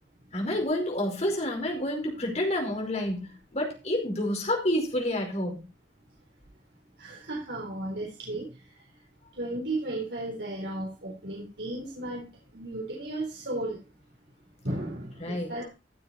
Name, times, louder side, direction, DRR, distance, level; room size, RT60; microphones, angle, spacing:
voice 1, 0.3-5.6 15.2-15.5, left 1 dB, 35° left, 2 dB, 5.0 m, -29 dB
voice 2, 7.0-8.5 9.4-13.8 14.6-15.7, right 1 dB, 65° right, -1 dB, 3.9 m, -34 dB
15.5 x 7.3 x 4.3 m, 0.30 s
head